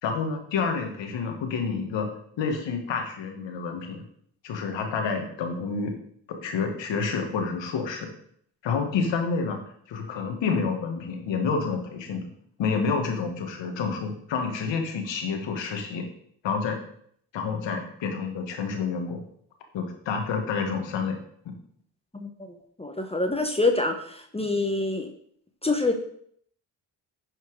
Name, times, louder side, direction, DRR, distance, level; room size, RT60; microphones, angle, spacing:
voice 1, 0.0-2.1 2.4-4.0 4.4-5.9 6.4-8.1 8.6-9.6 9.9-12.3 12.6-16.1 16.4-16.8 17.3-19.2 19.7-21.2 21.5-21.6, left 5 dB, 80° left, 4 dB, 1.7 m, -28 dB
voice 2, 22.8-25.1 25.6-25.9, left 2 dB, 15° left, 5 dB, 1.3 m, -25 dB
11.0 x 4.5 x 4.8 m, 0.65 s
supercardioid pair, 55°, 44 cm